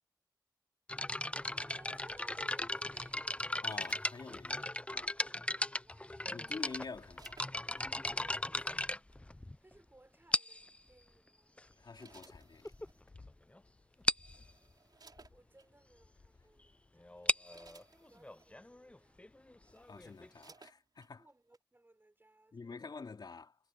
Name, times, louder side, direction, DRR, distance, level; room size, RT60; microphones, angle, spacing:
sound 1, 0.9-9.7 10.3-10.8 11.6-11.7 12.3-12.4 12.7-12.9 13.2-13.3 13.6-13.7 14.1-14.4 17.0-20.5, left 1 dB, 15° left, 0.6 m, -37 dB
voice 1, 1.5-3.5 5.3-6.1 8.2-9.1 9.3-11.6 13.9-14.0 15.3-17.2 18.0-19.2 21.1-22.9, right 2 dB, 30° right, 5.8 m, -62 dB
sound 2, 3.3-4.7 6.0-7.9 8.9-9.2 10.8-11.1 11.6-13.0 13.8-13.9 14.2-15.7 16.4-16.6 17.0-18.5 19.2-19.3 19.6-21.1 21.5-21.6, right 4 dB, 70° right, 4.5 m, -62 dB
voice 2, 3.6-5.1 6.3-7.4 11.8-12.6 19.9-21.3 22.5-23.6, left 4 dB, 75° left, 3.3 m, -47 dB
sound 3, 11.6-20.2, left 3 dB, 60° left, 6.8 m, -65 dB
wide cardioid pair, 55°, 7 cm